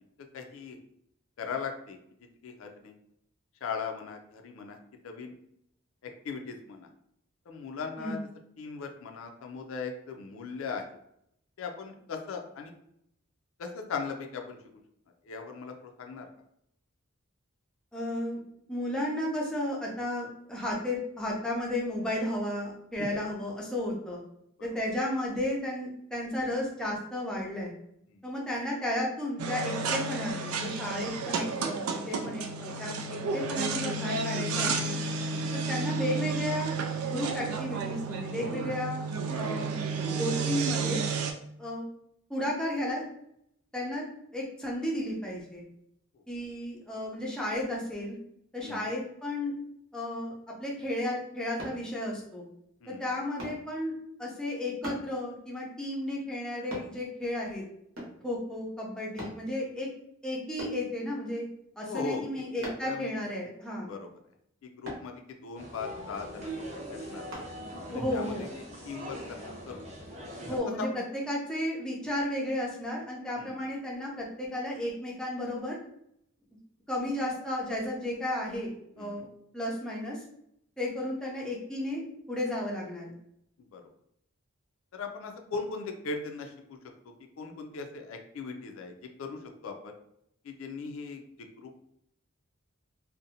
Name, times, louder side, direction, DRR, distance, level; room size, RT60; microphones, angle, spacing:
voice 1, 0.3-0.8 1.4-2.0 2.4-2.9 3.6-4.8 5.0-5.3 6.0-6.9 7.5-8.2 8.6-10.9 11.6-12.7 13.6-14.6 15.2-16.3 24.6-24.7 28.1-28.3 35.3-35.5 48.6-48.9 52.8-53.1 61.9-63.1 63.8-64.1 64.6-67.3 67.9-68.5 68.8-69.4 69.7-69.8 70.8-71.0 73.4-73.6 79.0-79.3 83.7-83.8 84.9-86.8 87.0-89.9 90.4-91.8, left 5 dB, 70° left, 4 dB, 0.4 m, -39 dB
voice 2, 17.9-18.4 18.7-24.2 24.6-27.7 28.2-32.9 33.3-34.9 35.5-36.7 37.0-39.0 39.3-39.7 40.1-41.1 41.6-41.8 42.3-43.0 43.7-44.0 44.3-45.6 46.3-48.2 48.5-49.5 49.9-50.3 50.6-52.5 52.9-53.9 54.2-57.6 58.2-59.9 60.2-61.5 61.8-63.9 67.9-68.5 70.4-75.8 76.9-79.3 79.5-80.2 80.8-82.0 82.3-83.1, left 1 dB, 5° left, -4 dB, 0.5 m, -33 dB
sound 1, 29.4-41.3, right 4 dB, 90° right, 0.4 m, -32 dB
sound 2, 51.6-51.8 53.4-53.6 54.8-55.1 56.7-56.9 58.0-58.2 59.2-59.4 60.6-60.8 62.6-62.9 64.8-65.1 67.3-67.5 68.1-68.2, equal, 65° right, 0.9 m, -39 dB
sound 3, 65.6-70.6, right 1 dB, 35° right, 0.7 m, -41 dB
2.6 x 2.1 x 2.7 m, 0.75 s
head